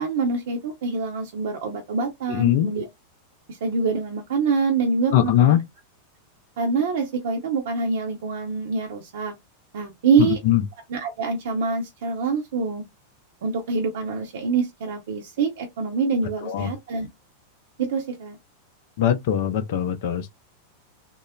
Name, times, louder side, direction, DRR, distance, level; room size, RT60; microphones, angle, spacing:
voice 1, 0.0-2.9 3.5-5.6 6.6-9.3 9.7-10.4 10.9-12.8 13.4-17.1 17.8-18.4, right 4 dB, 55° right, 0.7 m, -25 dB
voice 2, 2.3-2.7 5.1-5.6 10.2-10.6 16.4-16.7 19.0-20.3, left 11 dB, 50° left, 0.5 m, -21 dB
3.7 x 2.0 x 2.2 m
figure-of-eight pair, 90°, 0 cm